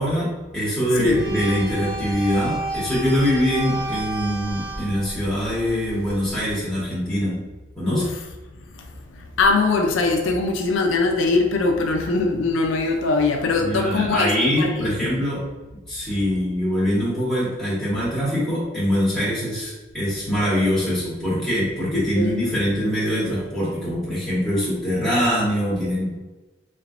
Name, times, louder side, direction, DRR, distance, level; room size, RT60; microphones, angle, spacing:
voice 1, 0.0-7.4 7.7-8.0 13.6-15.4 15.9-26.1, equal, ahead, -10 dB, 1.3 m, -23 dB
sound 1, 1.1-6.5, right 2 dB, 50° right, 0.8 m, -32 dB
voice 2, 9.4-14.9 21.9-22.5, left 3 dB, 85° left, 3 dB, 0.4 m, -21 dB
3.3 x 3.2 x 2.5 m, 1.2 s
head